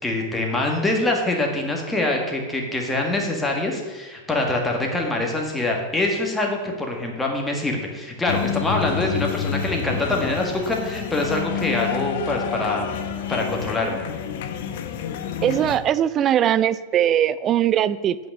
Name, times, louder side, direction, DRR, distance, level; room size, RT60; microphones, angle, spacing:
voice 1, 0.0-12.9 13.3-14.0, left 2 dB, 10° left, 0 dB, 1.7 m, -24 dB
sound 1, 8.3-15.8, left 8 dB, 55° left, 0.8 m, -28 dB
voice 2, 15.4-18.3, right 10 dB, 30° right, 17 dB, 0.4 m, -20 dB
9.0 x 6.0 x 6.5 m, 1.2 s
figure-of-eight pair, 90°, 0 cm